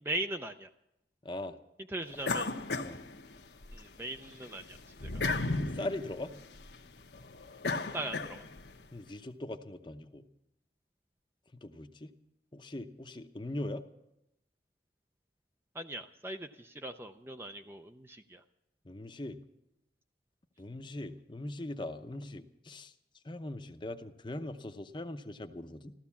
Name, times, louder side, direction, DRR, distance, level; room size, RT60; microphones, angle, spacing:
voice 1, 0.0-0.7 1.9-2.5 3.7-4.8 5.0-5.2 7.9-8.4 15.7-18.4, right 1 dB, 15° right, 7 dB, 0.5 m, -39 dB
voice 2, 1.2-1.6 2.8-3.0 5.7-6.3 8.9-10.2 11.5-12.1 12.5-13.8 18.8-19.4 20.6-22.9 23.2-25.9, left 1 dB, 25° left, 8 dB, 0.7 m, -40 dB
sound 1, 2.2-3.8 4.2-8.8, left 3 dB, 80° left, 1.1 m, -35 dB
15.0 x 13.0 x 7.2 m, 0.86 s
head